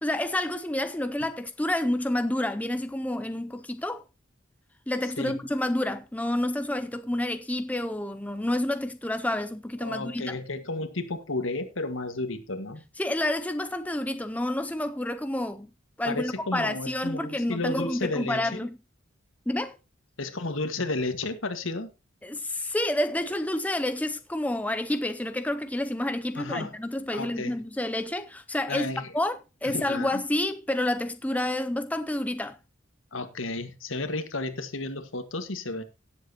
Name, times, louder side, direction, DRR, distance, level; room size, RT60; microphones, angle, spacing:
voice 1, 0.0-4.0 4.9-10.4 13.0-15.7 16.0-18.8 19.5-19.8 22.2-28.9 29.1-32.6, left 1 dB, 5° left, 0.5 m, -29 dB
voice 2, 9.8-12.8 16.0-18.7 20.2-21.9 26.3-26.8 27.1-27.6 28.7-29.1 29.6-30.2 33.1-35.8, left 2 dB, 80° left, 1.7 m, -32 dB
17.5 x 7.7 x 2.9 m
head